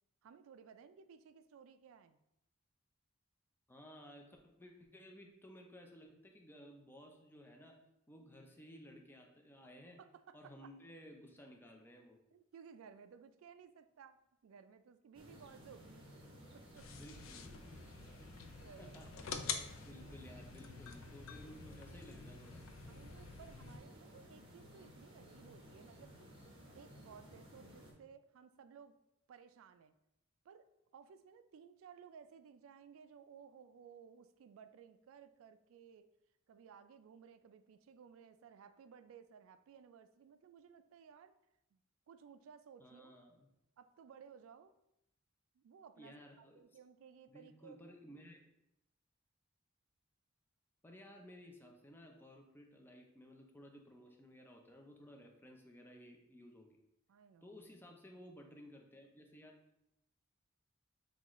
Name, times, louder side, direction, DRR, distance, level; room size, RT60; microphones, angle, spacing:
voice 1, 0.2-2.2 10.0-10.7 12.3-16.1 16.5-17.0 18.6-19.0 22.9-26.2 26.7-29.0 29.3-29.9 30.4-36.1 36.5-41.3 41.7-41.8 42.1-43.2 43.8-44.7 45.5-48.0 57.1-57.6, right 7 dB, 90° right, 10 dB, 0.3 m, -58 dB
voice 2, 3.7-7.8 8.1-10.0 10.3-12.2 16.9-17.5 18.8-19.1 19.5-22.6 42.8-43.5 46.0-46.6 47.3-48.4 50.8-56.8 57.4-59.6, equal, 10° left, 2 dB, 0.5 m, -56 dB
sound 1, 15.1-27.9, equal, 25° right, 0.8 m, -57 dB
sound 2, 16.8-23.8, left 6 dB, 80° left, 0.4 m, -47 dB
5.9 x 2.5 x 3.0 m, 0.84 s
head